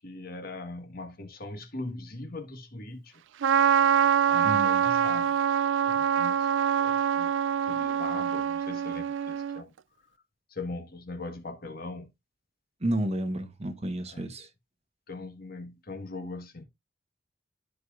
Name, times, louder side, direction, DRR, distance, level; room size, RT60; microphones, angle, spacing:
voice 1, 0.0-3.2 4.2-5.4 5.9-6.5 6.8-7.3 7.7-9.7 10.5-12.1 14.1-14.2 15.1-16.6, left 2 dB, 55° left, 1.6 m, -40 dB
Trumpet, 3.4-9.6, right 9 dB, 85° right, 0.4 m, -25 dB
voice 2, 4.4-4.8 12.8-14.5, right 1 dB, 35° right, 1.2 m, -31 dB
13.0 x 4.8 x 2.5 m
head